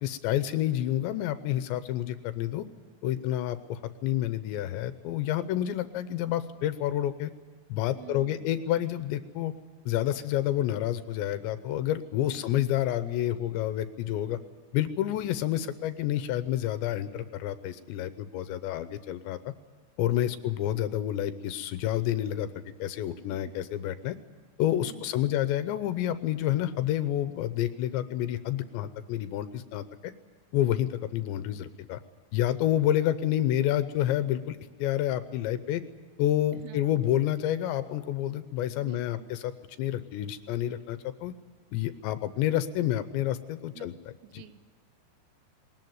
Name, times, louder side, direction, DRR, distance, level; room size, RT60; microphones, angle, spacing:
voice 1, 0.0-2.6 3.0-7.3 7.7-9.5 9.9-14.4 14.7-19.5 20.0-24.2 24.6-30.1 30.5-32.0 32.3-35.8 36.2-39.5 39.8-41.3 41.7-43.9 44.3-44.4, left 12 dB, 80° left, 12 dB, 2.8 m, -29 dB
voice 2, 8.0-8.6 12.3-12.5 20.3-20.5 23.3-23.5 24.8-25.5 36.5-37.2 38.8-39.3 43.7-43.9 44.2-44.8, right 12 dB, 85° right, 12 dB, 3.5 m, -50 dB
20.5 x 19.5 x 9.3 m, 1.6 s
omnidirectional pair, 5.6 m